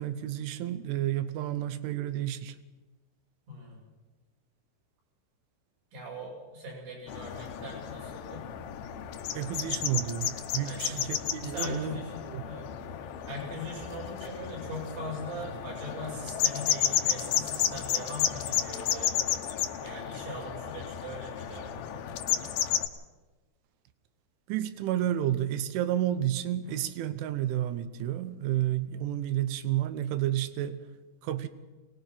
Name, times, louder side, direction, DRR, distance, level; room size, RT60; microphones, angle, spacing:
voice 1, 0.0-2.6 9.3-12.0 12.3-12.4 24.5-30.8 31.2-31.5, right 12 dB, 85° right, 12 dB, 3.4 m, -31 dB
voice 2, 3.5-3.8 5.9-8.5 10.6-12.7 13.3-19.2 19.8-22.2 26.6-26.8, equal, 70° right, -3 dB, 9.6 m, -41 dB
sound 1, 7.1-22.9, left 10 dB, 75° left, 2.2 m, -32 dB
23.0 x 19.0 x 5.9 m, 1.2 s
omnidirectional pair, 5.5 m